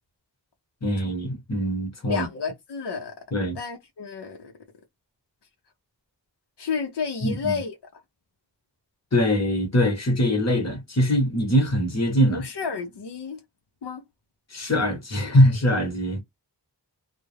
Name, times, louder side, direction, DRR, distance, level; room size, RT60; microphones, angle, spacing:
voice 1, 0.8-2.3 3.3-3.6 7.2-7.6 9.1-12.4 14.5-16.2, equal, 40° left, 1.0 m, -22 dB
voice 2, 2.1-3.2 3.5-4.5 6.6-8.0 12.3-13.4 13.8-14.0, left 5 dB, 80° left, 0.6 m, -31 dB
2.3 x 2.0 x 3.1 m
wide cardioid pair, 70°, 40 cm